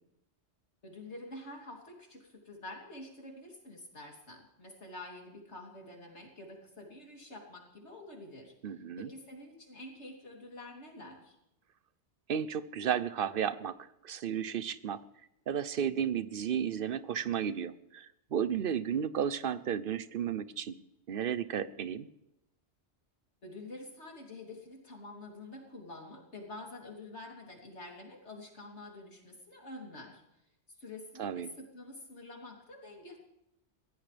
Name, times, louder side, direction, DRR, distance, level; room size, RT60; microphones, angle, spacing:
voice 1, 0.8-8.5 9.0-11.4 23.4-30.2 30.7-33.2, left 2 dB, 75° left, 0 dB, 3.6 m, -47 dB
voice 2, 8.6-9.1 12.3-13.7 14.0-15.0 15.5-20.8 21.1-22.1 31.2-31.5, right 8 dB, 55° right, 15 dB, 0.9 m, -33 dB
22.5 x 16.0 x 3.4 m, 0.85 s
omnidirectional pair, 1.2 m